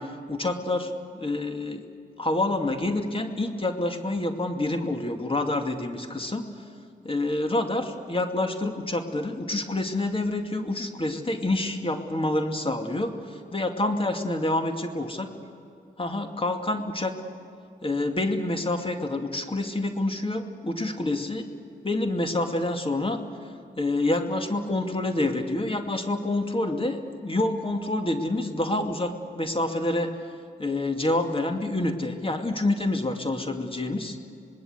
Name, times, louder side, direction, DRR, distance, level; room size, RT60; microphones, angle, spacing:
voice 1, 0.0-1.8 2.2-6.5 7.0-15.3 16.0-17.2 17.8-21.5 21.8-23.2 23.8-30.1 30.6-34.2, left 2 dB, 30° left, 5 dB, 2.4 m, -27 dB
26.0 x 19.5 x 8.0 m, 2.5 s
cardioid pair, 50°, 19 cm